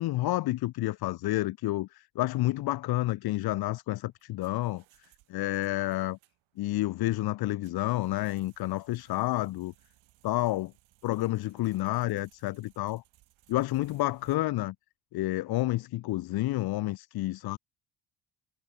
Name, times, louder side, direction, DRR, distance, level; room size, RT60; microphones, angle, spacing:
voice 1, 0.0-4.8 5.3-6.2 6.6-9.7 10.2-10.7 11.0-13.0 13.5-14.7 15.1-17.6, left 17 dB, 50° left, 0.6 m, -29 dB
sound 1, 4.0-14.4, right 17 dB, 75° right, 5.3 m, -64 dB
supercardioid pair, 70°, 48 cm